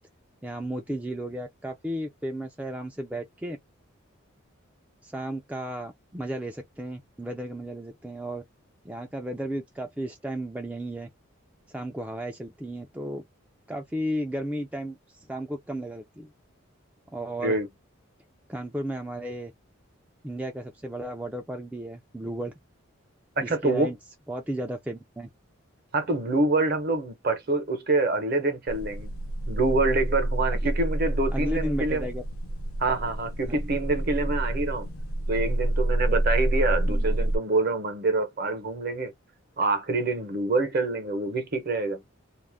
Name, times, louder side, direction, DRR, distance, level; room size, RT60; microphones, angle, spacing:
voice 1, 0.4-3.6 5.0-8.4 8.8-11.1 11.7-13.2 13.7-16.3 17.1-17.6 18.5-19.5 20.2-22.5 23.4-24.0 24.3-25.3 31.3-32.2 36.9-37.0, right 1 dB, 5° right, 0.3 m, -34 dB
voice 2, 23.4-23.9 25.9-29.1 29.5-32.1 32.8-34.9 35.3-39.1 39.6-42.0, right 3 dB, 45° right, 0.8 m, -26 dB
sound 1, 28.7-37.4, right 1 dB, 85° left, 0.6 m, -28 dB
2.4 x 2.1 x 3.3 m
head